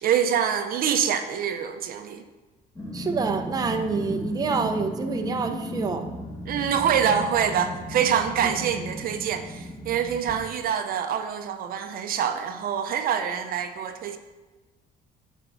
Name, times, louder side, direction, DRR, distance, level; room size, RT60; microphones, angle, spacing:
voice 1, 0.0-2.2 6.5-14.2, right 8 dB, 60° right, 7 dB, 0.6 m, -25 dB
Growling, 2.8-10.4, equal, 20° left, 1.8 m, -35 dB
voice 2, 2.9-6.1 8.4-8.5, right 4 dB, 20° right, 5 dB, 0.6 m, -27 dB
8.9 x 4.5 x 4.0 m, 1.2 s
cardioid pair, 110°, 17 cm